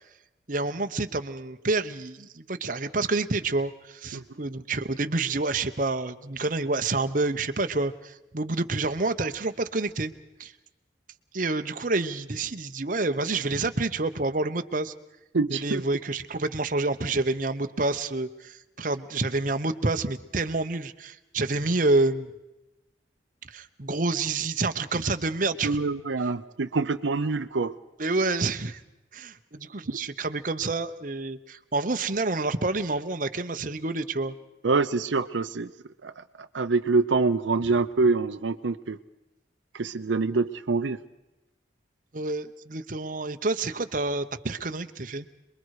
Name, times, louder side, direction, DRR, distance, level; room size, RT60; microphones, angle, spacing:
voice 1, 0.5-10.1 10.4-10.5 11.3-14.9 15.5-22.3 23.4-25.8 28.0-28.8 29.1-34.4 42.1-45.3, right 3 dB, 45° right, 8 dB, 1.0 m, -28 dB
voice 2, 15.3-15.8 25.6-27.7 34.6-35.7 36.0-39.0 39.7-41.0, right 3 dB, 85° right, 10 dB, 0.7 m, -25 dB
27.5 x 22.0 x 4.9 m, 0.97 s
head